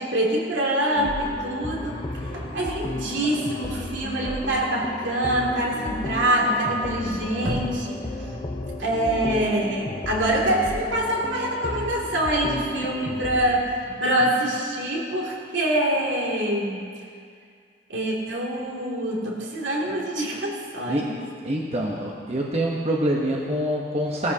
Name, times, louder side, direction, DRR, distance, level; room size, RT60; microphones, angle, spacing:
voice 1, 0.0-2.0 2.3-8.0 8.8-16.9 17.9-21.1, right 1 dB, 75° right, -3 dB, 2.5 m, -25 dB
sound 1, 0.9-13.4, left 1 dB, 25° left, 0.8 m, -33 dB
voice 2, 21.4-24.3, right 1 dB, 35° right, -2 dB, 1.1 m, -25 dB
18.0 x 13.5 x 2.8 m, 2.2 s
head